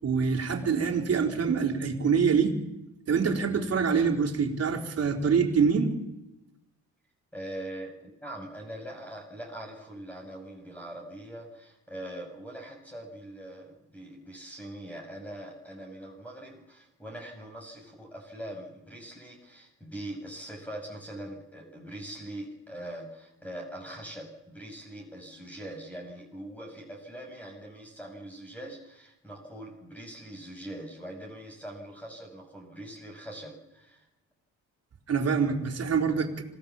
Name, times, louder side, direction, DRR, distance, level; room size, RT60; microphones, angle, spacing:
voice 1, 0.0-2.5 3.1-5.9 35.1-36.4, right 6 dB, 55° right, 2 dB, 4.2 m, -25 dB
voice 2, 7.3-34.1, right 1 dB, 5° left, 1 dB, 6.6 m, -42 dB
27.0 x 17.5 x 7.2 m, 0.89 s
cardioid pair, 90°, 30 cm